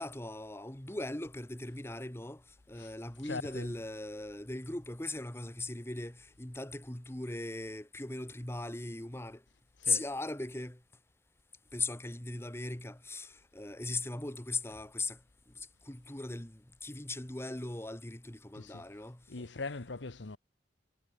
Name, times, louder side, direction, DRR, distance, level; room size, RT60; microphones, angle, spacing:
voice 1, 0.0-2.4 2.7-9.4 9.8-10.8 11.7-15.2 15.6-19.4, left 2 dB, 15° left, 1.4 m, -39 dB
voice 2, 3.2-3.8 9.8-10.0 18.5-18.8 19.3-20.4, left 3 dB, 85° left, 1.1 m, -41 dB
head